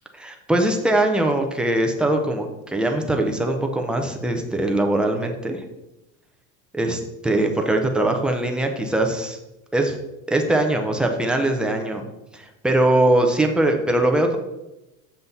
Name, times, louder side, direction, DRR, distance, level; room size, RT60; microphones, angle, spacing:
voice 1, 0.1-5.6 6.7-9.4 9.7-10.0 10.3-12.0 12.3-14.4, right 1 dB, ahead, 2 dB, 0.5 m, -21 dB
7.7 x 7.1 x 4.0 m, 0.96 s
supercardioid pair, 155°, 42 cm